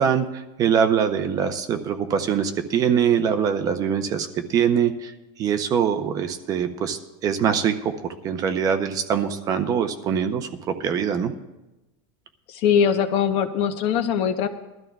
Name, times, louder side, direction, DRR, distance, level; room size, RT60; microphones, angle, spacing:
voice 1, 0.0-5.1 5.4-7.9 8.2-10.5 10.8-11.3, right 7 dB, 25° right, 7 dB, 0.6 m, -23 dB
voice 2, 12.5-14.5, left 7 dB, 45° left, 8 dB, 0.9 m, -21 dB
21.5 x 13.0 x 2.3 m, 1.0 s
supercardioid pair, 165°, 14 cm